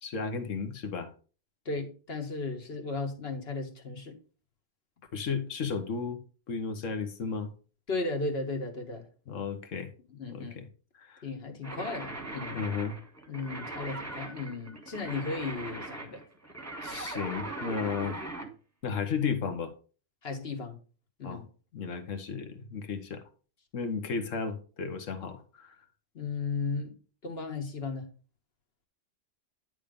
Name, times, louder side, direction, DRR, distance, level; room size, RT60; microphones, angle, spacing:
voice 1, 0.0-1.1 5.1-6.2 6.5-7.5 9.3-9.9 10.3-10.7 11.0-11.2 12.5-13.0 16.8-18.2 18.8-19.7 21.2-21.4 21.7-23.2 23.7-25.7, left 5 dB, 85° left, 1.5 m, -34 dB
voice 2, 1.6-4.2 7.9-9.0 10.1-10.6 11.2-12.6 13.3-16.2 20.2-20.8 21.2-21.4 26.1-26.9 27.2-28.1, left 3 dB, 55° left, 1.6 m, -35 dB
sound 1, 11.6-18.5, right 2 dB, 15° right, 1.4 m, -40 dB
10.0 x 3.6 x 5.2 m
omnidirectional pair, 1.3 m